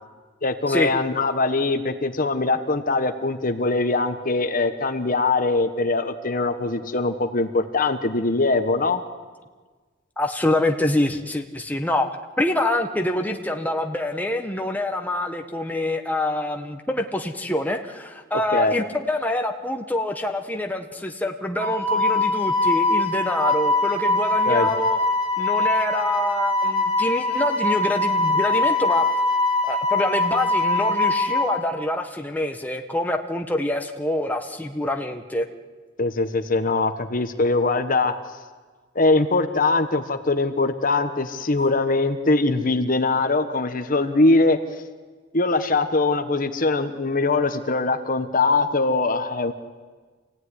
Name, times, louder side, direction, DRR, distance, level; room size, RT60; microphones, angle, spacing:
voice 1, 0.4-9.0 18.5-18.8 24.5-24.7 36.0-38.1 38.9-44.6 45.3-49.5, left 3 dB, 45° left, 8 dB, 1.3 m, -22 dB
voice 2, 10.2-12.1 12.4-25.0 25.4-29.0 29.6-35.5, left 1 dB, 10° left, 3 dB, 1.4 m, -26 dB
Wind instrument woodwind instrument, 21.6-31.5, left 2 dB, 10° right, 7.9 m, -22 dB
26.5 x 17.0 x 9.9 m, 1.4 s
head